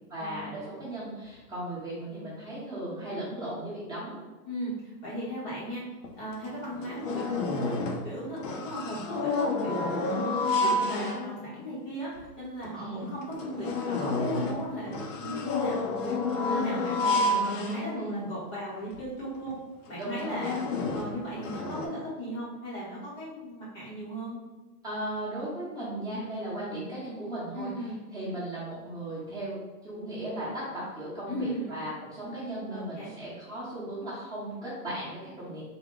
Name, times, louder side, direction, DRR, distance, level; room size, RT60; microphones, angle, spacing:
voice 1, 0.1-4.2 10.5-10.8 12.7-13.1 16.5-16.8 18.0-18.3 20.0-20.5 24.8-27.7 28.1-29.6 29.8-35.6, right 1 dB, 10° right, -9 dB, 0.9 m, -36 dB
voice 2, 4.5-5.8 6.1-7.7 8.0-10.2 10.6-16.2 16.5-17.3 17.6-19.6 19.9-20.6 20.9-24.4 27.5-28.0 31.3-31.8 32.7-33.1, equal, 20° left, -7 dB, 0.8 m, -37 dB
sound 1, 6.0-6.1 6.4-8.1 8.4-11.6 12.2-12.3 12.6-12.7 13.2-18.4 18.9-19.0 19.3-19.5 20.0-21.9, left 2 dB, 55° left, 0.7 m, -30 dB
3.7 x 2.1 x 3.7 m, 1.2 s
hypercardioid pair, 140°, 48 cm